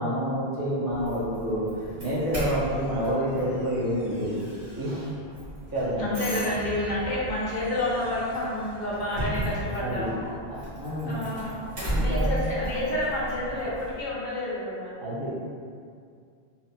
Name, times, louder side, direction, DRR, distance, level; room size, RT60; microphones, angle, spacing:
voice 1, 0.0-4.4 4.8-5.1 5.7-6.1 9.8-10.1 10.5-11.3 11.9-12.5 15.0-15.4, equal, 25° right, -9 dB, 0.5 m, -28 dB
Doorbell, 0.9-14.0, right 1 dB, 60° right, 1.2 m, -35 dB
voice 2, 6.0-10.4 11.0-11.6 12.0-14.9, left 1 dB, 50° left, -7 dB, 0.7 m, -29 dB
2.6 x 2.2 x 2.5 m, 2.3 s
omnidirectional pair, 1.1 m